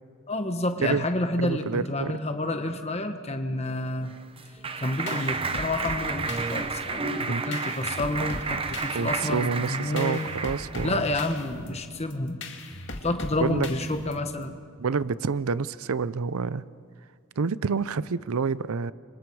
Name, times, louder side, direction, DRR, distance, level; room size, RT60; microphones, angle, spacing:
voice 1, 0.3-4.1 4.8-10.3 10.8-12.4 13.0-14.6, left 2 dB, 30° left, 7 dB, 1.3 m, -29 dB
voice 2, 1.4-2.1 7.2-7.4 8.9-11.0 13.4-13.7 14.8-16.6 17.4-18.9, right 5 dB, 80° right, 17 dB, 0.6 m, -28 dB
Clapping, 3.8-11.1, right 4 dB, 25° right, 0.8 m, -32 dB
sound 1, 4.8-14.4, left 2 dB, 55° left, 2.2 m, -40 dB
28.5 x 25.5 x 4.8 m, 2.1 s
head